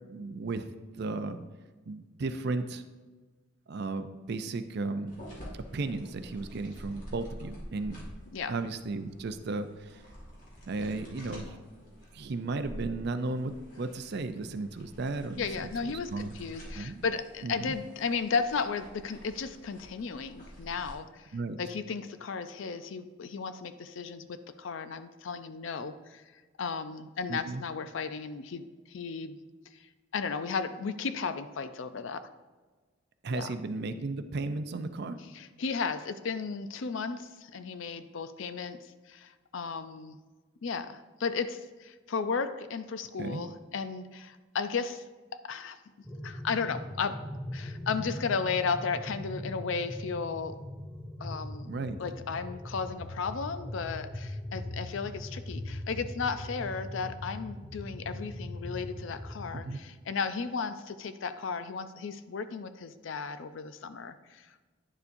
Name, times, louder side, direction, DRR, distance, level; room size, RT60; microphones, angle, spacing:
voice 1, 0.0-1.4 1.9-2.8 3.7-5.2 5.7-8.0 8.5-10.0 10.6-11.6 12.1-15.7 16.1-16.3 16.8-17.0 17.4-17.7 21.3-21.6 27.3-27.6 33.2-35.2 43.2-43.4 51.7-52.0 59.6-59.8, right 3 dB, 50° right, 10 dB, 0.5 m, -35 dB
sound 1, 5.1-20.9, equal, 40° left, 1.9 m, -48 dB
voice 2, 15.4-21.3 21.6-26.2 26.6-29.4 29.8-32.3 33.3-33.5 35.3-40.2 40.6-45.0 45.3-45.8 46.2-47.2 47.5-50.6 51.2-51.7 52.0-64.6, left 5 dB, 65° left, 11 dB, 0.4 m, -34 dB
sound 2, 46.0-59.8, left 1 dB, 10° left, 0.4 m, -40 dB
9.8 x 7.0 x 2.6 m, 1.3 s
head